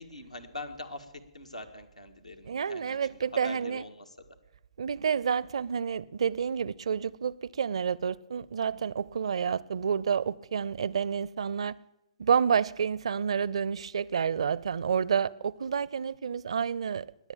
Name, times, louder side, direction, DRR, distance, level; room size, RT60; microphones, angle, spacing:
voice 1, 0.0-4.2, left 2 dB, 85° left, 1.7 m, -43 dB
voice 2, 2.5-3.8 4.8-11.8 12.2-17.3, right 7 dB, 60° right, 0.5 m, -29 dB
20.5 x 8.1 x 8.7 m
figure-of-eight pair, 120°, 3 cm